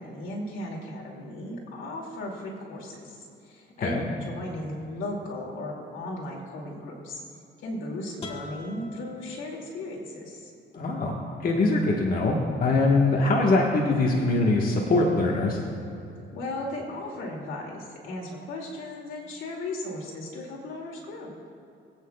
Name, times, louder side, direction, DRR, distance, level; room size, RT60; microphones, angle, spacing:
voice 1, 0.0-7.2 7.6-10.5 16.3-21.3, left 1 dB, 80° left, -2 dB, 2.5 m, -36 dB
sound 1, 8.2-10.1, left 3 dB, 30° left, 1.8 m, -43 dB
voice 2, 10.7-15.6, left 2 dB, 45° left, -2 dB, 1.4 m, -23 dB
22.0 x 8.7 x 2.3 m, 2.7 s
cardioid pair, 90°, 20 cm